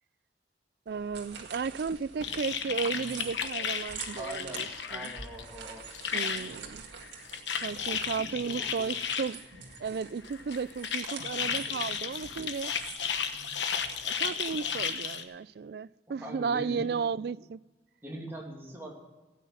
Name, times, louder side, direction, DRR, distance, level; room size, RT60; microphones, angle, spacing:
voice 1, 0.9-5.1 6.1-6.8 7.6-9.4 9.8-12.7 14.0-17.6, right 5 dB, 60° right, 0.3 m, -34 dB
sound 1, 0.9-14.9, right 5 dB, 80° right, 1.9 m, -47 dB
sound 2, 2.2-5.4 5.7-6.5 7.0-9.3 10.2-15.2, left 7 dB, 85° left, 1.1 m, -34 dB
voice 2, 4.2-5.9 6.2-6.5 8.0-9.0 11.3-12.3 16.2-17.0 18.0-18.9, right 1 dB, 15° right, 2.6 m, -43 dB
16.0 x 9.3 x 5.8 m
head